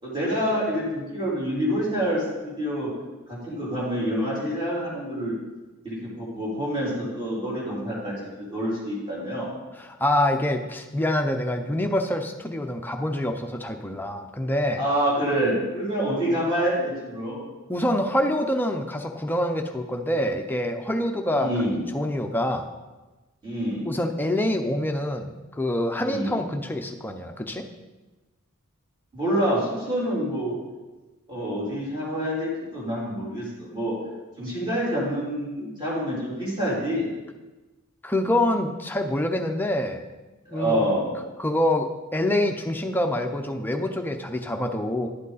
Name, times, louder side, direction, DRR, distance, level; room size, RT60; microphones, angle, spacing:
voice 1, 0.0-2.9 3.3-5.3 5.8-9.5 14.8-17.4 21.3-21.8 23.4-23.9 26.0-26.4 29.1-30.6 31.3-33.9 34.4-37.1 40.5-41.1, equal, 20° right, -7 dB, 3.8 m, -27 dB
voice 2, 9.8-14.8 17.7-21.5 21.9-22.7 23.9-27.6 38.0-40.0 40.5-40.8 41.4-45.1, left 1 dB, 10° left, 4 dB, 0.6 m, -26 dB
11.0 x 7.9 x 4.1 m, 1.2 s
head